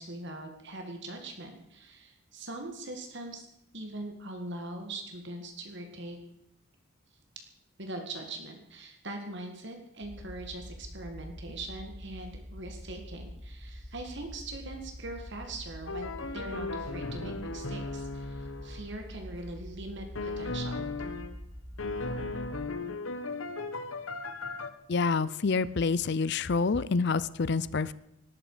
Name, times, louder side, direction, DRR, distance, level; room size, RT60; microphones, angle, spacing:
voice 1, 0.0-3.5 3.7-6.2 7.8-20.9, right 2 dB, 55° right, 4 dB, 2.1 m, -41 dB
sound 1, 10.0-22.7, equal, 5° right, 1.4 m, -45 dB
sound 2, 15.9-18.9 20.2-21.4 21.8-24.7, left 3 dB, 70° left, 1.3 m, -36 dB
voice 2, 24.9-27.9, left 4 dB, 50° left, 18 dB, 0.5 m, -27 dB
18.0 x 13.0 x 5.0 m, 0.79 s
head